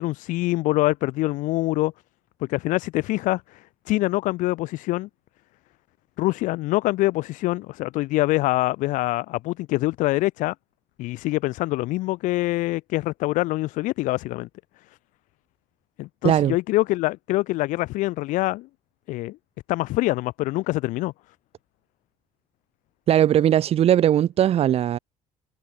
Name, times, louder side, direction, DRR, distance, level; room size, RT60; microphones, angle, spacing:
voice 1, 0.0-1.9 2.5-5.1 6.2-10.5 11.0-14.5 16.0-18.7 19.1-19.4 19.7-21.1, left 19 dB, 85° left, 4.8 m, -25 dB
voice 2, 16.2-16.6 23.1-25.0, right 11 dB, 50° right, 5.7 m, -19 dB
cardioid pair, 145°, 13 cm